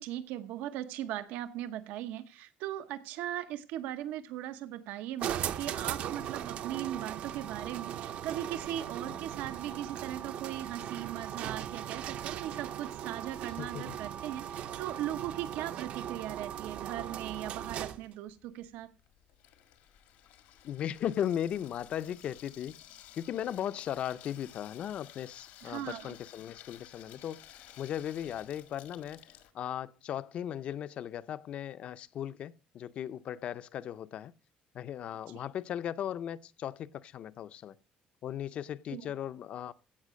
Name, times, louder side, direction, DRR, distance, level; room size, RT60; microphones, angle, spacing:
voice 1, 0.0-18.9 25.6-26.1 35.3-35.4 38.9-39.0, right 12 dB, 90° right, 0.9 m, -39 dB
sound 1, 5.2-18.1, right 10 dB, 55° right, 0.6 m, -38 dB
voice 2, 13.6-14.0 20.6-29.3 29.5-34.3 34.7-37.7 38.2-39.7, left 10 dB, 45° left, 0.5 m, -37 dB
Water tap faucet / Sink (filling or washing), 18.3-29.5, left 12 dB, 85° left, 1.6 m, -55 dB
16.0 x 5.7 x 6.3 m
cardioid pair, 165°, 3 cm